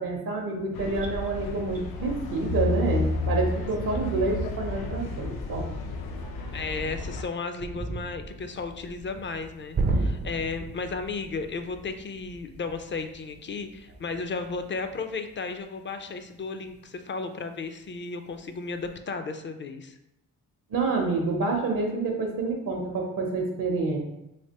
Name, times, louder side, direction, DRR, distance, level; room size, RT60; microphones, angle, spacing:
voice 1, 0.0-5.7 20.7-24.0, right 3 dB, 70° right, 1 dB, 0.7 m, -28 dB
sound 1, 0.7-7.2, left 3 dB, 80° left, 0.5 m, -31 dB
voice 2, 6.5-20.0, left 4 dB, 35° left, 8 dB, 0.4 m, -34 dB
sound 2, 7.6-17.3 17.6-17.8 18.3-19.0, right 3 dB, 30° right, 0.4 m, -35 dB
3.3 x 2.9 x 2.8 m, 0.89 s
cardioid pair, 60°, 36 cm